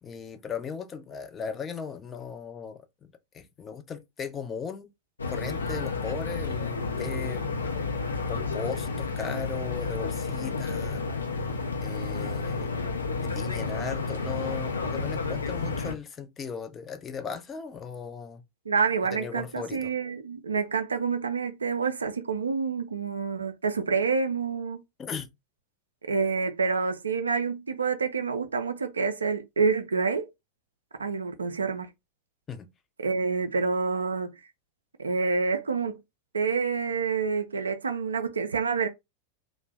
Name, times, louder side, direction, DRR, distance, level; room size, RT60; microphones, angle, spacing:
voice 1, 0.0-4.9 5.3-7.5 8.3-11.0 11.8-12.7 13.2-18.4 19.1-19.9 25.0-25.3 32.5-32.7, left 6 dB, 25° left, 0.5 m, -37 dB
sound 1, 5.2-15.9, left 4 dB, 75° left, 0.5 m, -31 dB
voice 2, 18.7-24.8 26.0-30.3 31.0-31.9 33.0-34.3 35.0-36.0 36.3-38.9, right 5 dB, 75° right, 0.4 m, -28 dB
2.5 x 2.1 x 3.3 m
figure-of-eight pair, 90°, 0 cm